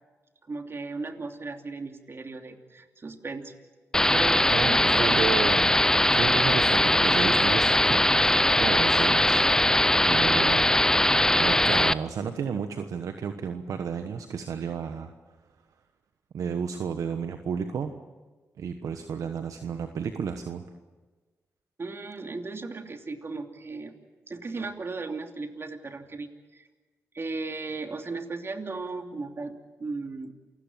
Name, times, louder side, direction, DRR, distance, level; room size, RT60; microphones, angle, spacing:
voice 1, 0.5-3.5 4.1-5.1 10.2-10.5 21.8-23.9 24.3-26.7 27.1-29.5 29.8-30.3, right 3 dB, 45° right, 5 dB, 2.9 m, -36 dB
sound 1, 3.9-11.9, left 1 dB, 10° left, 0.7 m, -21 dB
voice 2, 4.5-5.8 6.1-9.7 10.0-10.7 11.4-15.1 16.3-17.9 18.6-20.6, right 7 dB, 75° right, 7 dB, 1.2 m, -32 dB
28.5 x 17.5 x 7.5 m, 1.3 s
supercardioid pair, 45°, 6 cm